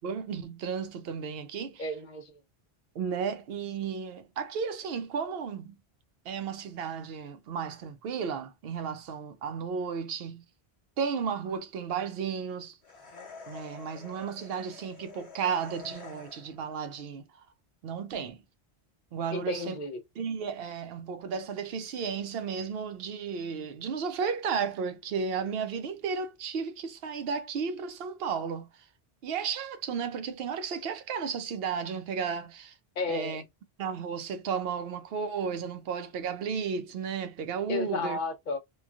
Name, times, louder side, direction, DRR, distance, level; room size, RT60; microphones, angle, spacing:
voice 1, 0.0-1.9 2.9-5.8 6.3-10.4 11.0-12.8 13.5-17.3 17.8-18.4 19.1-19.8 20.2-28.9 29.2-32.7 33.1-33.4 33.8-38.2, right 6 dB, 70° right, 0.8 m, -33 dB
voice 2, 1.8-2.4 19.3-20.0 33.0-33.4 37.7-38.6, left 3 dB, 55° left, 0.7 m, -32 dB
sound 1, 12.8-16.7, left 5 dB, 85° left, 1.1 m, -48 dB
3.0 x 2.3 x 2.3 m
omnidirectional pair, 1.1 m